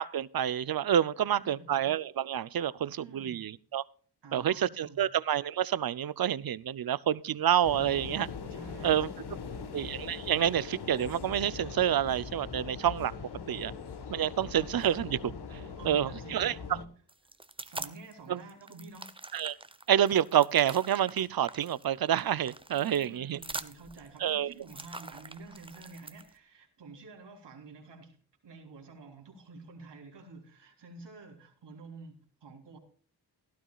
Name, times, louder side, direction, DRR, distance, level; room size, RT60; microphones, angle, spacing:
voice 1, 0.0-3.8 4.3-8.3 8.8-9.1 9.7-13.1 13.5-13.7 14.1-16.5 18.3-18.4 19.3-19.6 19.9-23.4 24.2-24.5, right 10 dB, 60° right, 0.6 m, -28 dB
voice 2, 1.3-1.8 2.9-3.5 4.2-5.1 8.5-9.7 15.8-16.9 17.6-19.1 22.7-28.2 28.4-32.8, right 3 dB, 85° right, 3.6 m, -49 dB
sound 1, 7.6-16.9, left 5 dB, 70° left, 1.4 m, -41 dB
sound 2, 17.1-18.1 18.5-26.3, right 2 dB, 15° right, 0.8 m, -44 dB
16.5 x 12.0 x 2.4 m
wide cardioid pair, 85°, 41 cm